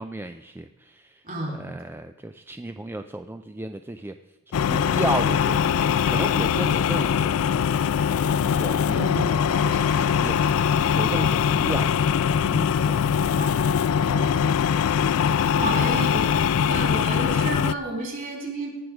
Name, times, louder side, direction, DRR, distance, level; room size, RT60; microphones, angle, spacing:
voice 1, 0.0-1.2 1.5-4.1 4.7-7.3 8.4-10.4 10.9-11.9 12.3-13.4 14.1-14.4, right 2 dB, 10° right, 9 dB, 0.3 m, -34 dB
voice 2, 1.2-1.7 8.8-10.2 12.3-12.7 13.4-13.5 15.6-16.3 16.7-18.7, right 1 dB, 40° right, 1 dB, 3.8 m, -31 dB
sound 1, 4.5-17.7, left 7 dB, 65° left, 0.4 m, -22 dB
18.5 x 6.3 x 4.9 m, 1.2 s
head